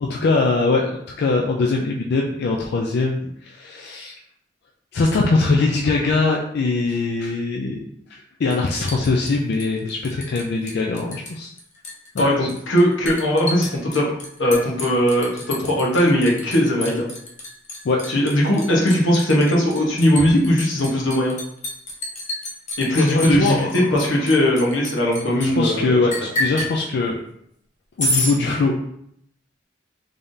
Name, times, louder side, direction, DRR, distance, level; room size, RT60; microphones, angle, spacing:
voice 1, 0.0-4.1 4.9-7.8 8.1-11.5 12.1-12.3 17.8-18.0 20.2-20.3 23.0-24.0 25.4-27.2 28.0-28.7, left 3 dB, 60° left, 0 dB, 0.4 m, -22 dB
Liquid, 8.5-10.4 10.7-11.3 11.6-25.5 26.1-26.7 28.0-28.4, left 1 dB, 40° left, 0.7 m, -29 dB
voice 2, 12.2-14.1 14.4-17.1 18.1-21.3 22.8-26.0, equal, 85° left, -3 dB, 1.1 m, -19 dB
3.6 x 3.4 x 2.6 m, 0.72 s
head